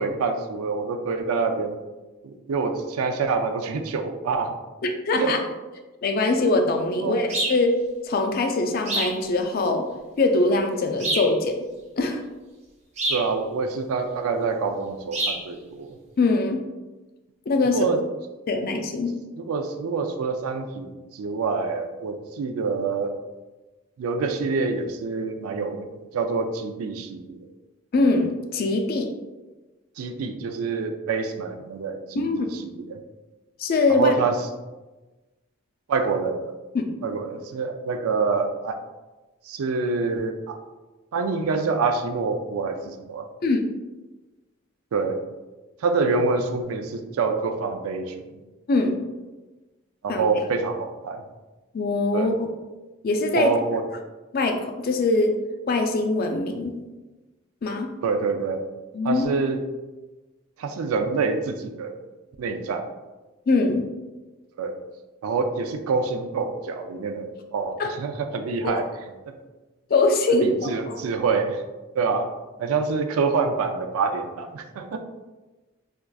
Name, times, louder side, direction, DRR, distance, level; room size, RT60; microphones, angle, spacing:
voice 1, 0.0-1.8 2.2-4.6 5.2-5.3 7.0-7.2 13.1-16.0 17.7-18.0 19.4-23.2 24.0-27.4 30.0-33.0 33.9-34.4 35.9-36.6 37.0-38.8 39.4-40.6 41.1-43.2 44.9-45.2 45.8-48.3 50.0-51.2 52.1-52.3 53.3-53.8 58.0-58.6 59.0-59.6 60.6-62.0 62.4-62.9 64.6-64.8 65.2-68.9 69.3-69.4 70.4-71.6 71.9-72.3 72.6-75.0, right 4 dB, 85° right, 6 dB, 0.4 m, -26 dB
voice 2, 4.8-5.4 6.0-7.7 8.0-9.9 10.2-11.7 12.0-12.2 16.2-16.6 17.5-17.8 18.5-19.1 27.9-29.1 32.2-32.5 33.6-34.1 36.7-37.0 43.4-43.6 48.7-49.0 50.1-50.2 51.7-52.5 53.0-53.5 54.3-55.4 55.7-56.8 57.6-57.9 58.9-59.3 63.5-63.9 67.8-67.9 68.6-68.8 69.9-71.0, left 3 dB, 45° left, 5 dB, 0.3 m, -22 dB
sound 1, 7.3-7.6 8.9-9.2 11.0-11.4 13.0-13.3 15.1-15.4, right 2 dB, 30° right, 0.6 m, -26 dB
4.4 x 2.4 x 2.3 m, 1.2 s
head